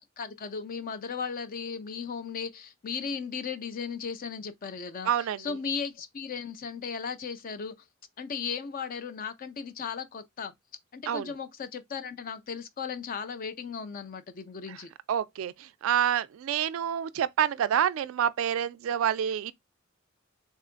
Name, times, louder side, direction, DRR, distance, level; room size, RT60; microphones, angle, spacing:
voice 1, 0.2-7.8 8.2-10.5 10.9-14.9, left 6 dB, 45° left, 0.4 m, -36 dB
voice 2, 5.0-5.4 11.1-11.3 15.1-19.5, right 9 dB, 80° right, 0.3 m, -27 dB
3.7 x 2.4 x 2.4 m
head